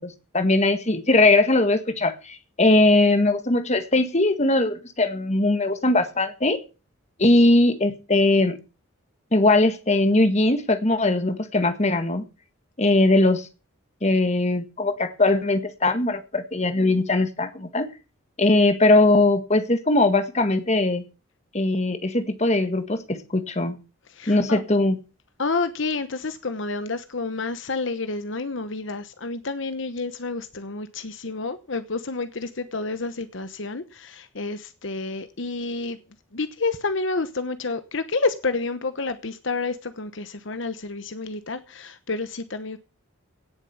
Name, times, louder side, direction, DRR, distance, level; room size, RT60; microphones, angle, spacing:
voice 1, 0.0-6.6 7.2-8.6 9.3-12.3 12.8-13.5 14.0-17.9 18.4-21.0 21.5-23.8 24.3-25.0, left 2 dB, 30° left, 1.6 m, -20 dB
voice 2, 24.1-24.6 25.4-36.0 36.3-42.8, left 3 dB, 60° left, 1.0 m, -29 dB
17.5 x 7.4 x 7.2 m
head